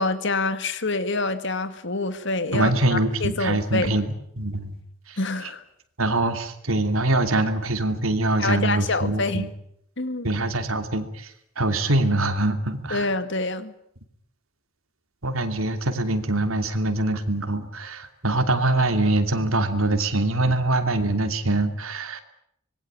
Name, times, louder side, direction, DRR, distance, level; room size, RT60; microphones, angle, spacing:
voice 1, 0.0-3.9 5.2-5.6 8.4-9.5 10.0-10.3 12.9-13.7, left 3 dB, 60° left, 11 dB, 2.0 m, -26 dB
voice 2, 2.5-4.1 4.4-4.8 5.1-5.5 6.0-9.5 10.2-13.1 15.2-22.2, right 2 dB, 90° right, 7 dB, 2.9 m, -24 dB
25.5 x 21.0 x 8.9 m, 0.72 s
head